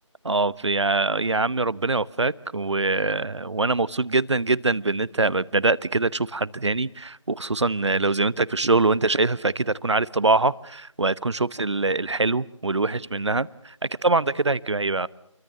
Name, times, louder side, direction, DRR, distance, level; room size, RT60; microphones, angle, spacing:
voice 1, 0.2-15.1, right 3 dB, 60° right, 19 dB, 0.9 m, -23 dB
29.0 x 23.5 x 6.8 m, 0.71 s
figure-of-eight pair, 165°, 17 cm